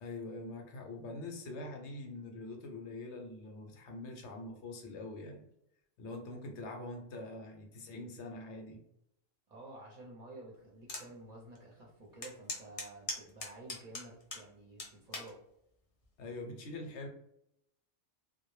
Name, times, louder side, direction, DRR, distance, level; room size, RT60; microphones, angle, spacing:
voice 1, 0.0-5.4 6.0-8.8 16.2-17.1, left 2 dB, 75° left, 2 dB, 0.9 m, -44 dB
voice 2, 9.5-15.4, right 2 dB, 45° right, -4 dB, 0.6 m, -51 dB
sound 1, 10.9-11.1 11.5-11.6 12.2-14.4 14.8-15.3 16.0-16.3, left 2 dB, 45° left, 0.5 m, -40 dB
2.2 x 2.1 x 3.1 m, 0.76 s
omnidirectional pair, 1.2 m